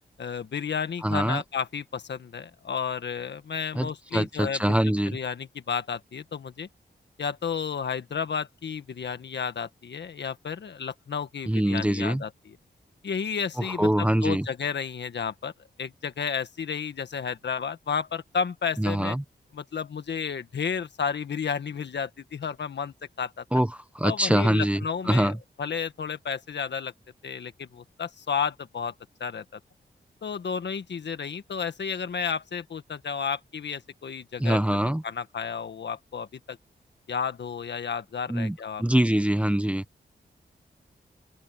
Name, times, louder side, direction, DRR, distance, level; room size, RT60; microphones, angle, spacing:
voice 1, 0.2-4.8 5.1-6.7 7.2-12.6 13.0-15.5 15.8-19.2 19.5-23.4 24.0-26.9 27.2-28.9 29.2-29.4 30.2-34.6 35.0-36.6 37.1-38.8, left 6 dB, 70° left, 1.6 m, -32 dB
voice 2, 1.0-1.4 3.7-5.2 11.5-12.2 13.6-14.5 18.8-19.2 23.5-25.4 34.4-35.0 38.3-39.8, right 1 dB, 5° right, 1.0 m, -24 dB
open air
wide cardioid pair, 110°, 19 cm